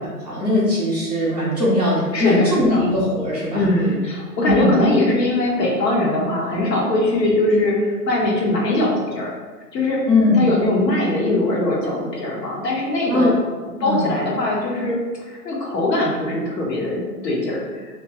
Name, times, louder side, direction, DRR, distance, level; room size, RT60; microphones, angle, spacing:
voice 1, 0.2-3.7 4.4-4.7 10.1-10.4 13.1-13.3 13.8-14.1, left 1 dB, 30° right, -8 dB, 0.4 m, -19 dB
voice 2, 2.1-2.8 3.5-9.3 9.7-10.0 10.4-13.4 13.8-15.0 15.3-17.8, left 2 dB, 85° left, -2 dB, 1.0 m, -21 dB
2.4 x 2.2 x 2.7 m, 1.4 s
hypercardioid pair, 165°, 48 cm